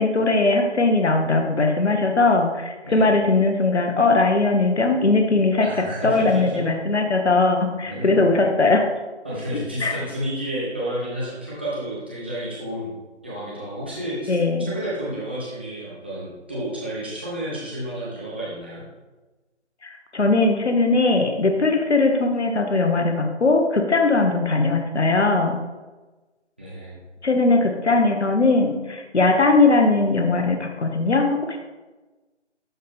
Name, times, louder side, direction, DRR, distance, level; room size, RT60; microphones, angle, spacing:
voice 1, 0.0-8.8 9.8-9.9 14.3-14.7 19.8-25.6 27.2-31.6, left 3 dB, 70° left, 4 dB, 1.2 m, -20 dB
voice 2, 5.6-6.6 7.8-8.3 9.2-12.9 13.2-14.3 14.7-18.8 26.6-27.0, equal, 10° right, -8 dB, 0.8 m, -31 dB
11.5 x 4.0 x 3.5 m, 1.2 s
figure-of-eight pair, 165°, 35 cm